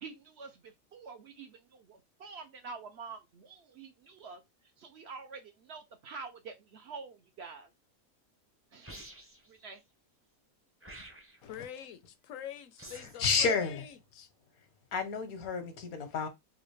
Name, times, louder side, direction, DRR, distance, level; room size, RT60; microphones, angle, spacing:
voice 1, 0.0-4.4 4.8-7.7 8.7-9.0 9.5-9.8, right 4 dB, 60° right, 0.8 m, -47 dB
sound 1, 8.8-9.5 10.8-11.5 12.8-13.3, right 1 dB, 15° right, 0.5 m, -49 dB
voice 2, 11.4-14.3, left 10 dB, 75° left, 0.9 m, -44 dB
voice 3, 13.2-13.8 14.9-16.3, left 5 dB, 90° left, 1.4 m, -30 dB
3.9 x 2.5 x 3.2 m
omnidirectional pair, 1.5 m